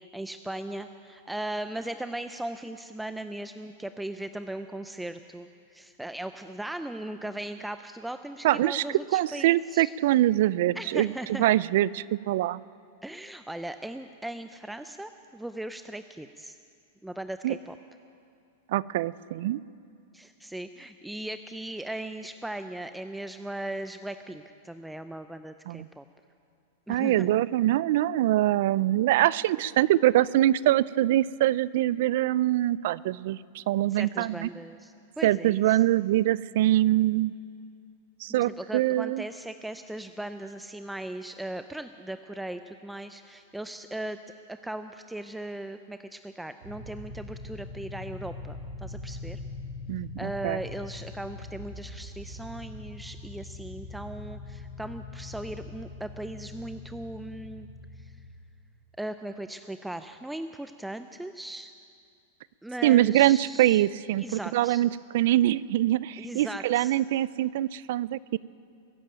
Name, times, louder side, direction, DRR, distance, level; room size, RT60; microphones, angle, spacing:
voice 1, 0.0-9.9 10.7-11.4 13.0-16.6 17.0-17.8 20.1-26.0 26.9-27.3 33.9-35.8 38.4-44.2 44.5-49.4 50.2-57.7 58.0-58.1 59.0-61.7 62.6-63.9 64.2-64.8 66.2-67.0, right 1 dB, 5° right, 9 dB, 0.5 m, -38 dB
voice 2, 8.4-12.6 17.4-17.5 18.7-19.6 25.7-25.9 26.9-34.5 35.2-37.3 38.2-39.2 49.9-50.6 62.8-68.4, right 14 dB, 65° right, 21 dB, 0.4 m, -24 dB
sound 1, 46.6-58.3, left 2 dB, 85° right, 2.8 m, -42 dB
21.5 x 7.4 x 9.1 m, 2.4 s
hypercardioid pair, 125°, 0 cm